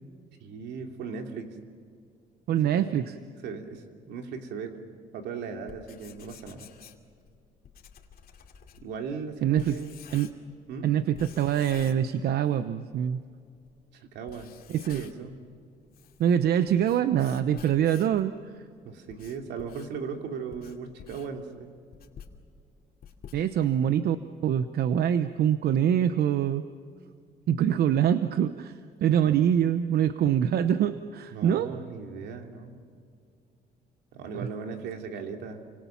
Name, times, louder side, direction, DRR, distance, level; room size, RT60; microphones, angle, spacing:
voice 1, 0.4-1.5 2.5-4.8 5.1-6.7 8.8-10.0 10.7-10.9 14.1-14.5 14.9-15.4 18.8-21.8 23.3-23.4 29.2-29.3 31.3-32.8 34.1-35.7, right 5 dB, 85° right, 4 dB, 2.9 m, -38 dB
voice 2, 2.5-3.1 9.4-9.8 10.1-10.3 10.8-13.2 14.7-15.0 16.2-18.3 23.3-24.2 24.4-26.6 27.5-31.7 34.3-34.5, right 9 dB, 70° right, 11 dB, 0.9 m, -24 dB
Writing, 5.7-10.6 11.1-12.6 12.9-13.0 13.7-13.8 14.2-15.3 15.7-18.2 18.8-23.9, left 7 dB, 60° left, 2.5 m, -50 dB
29.5 x 25.5 x 5.9 m, 2.3 s
cardioid pair, 105°, 17 cm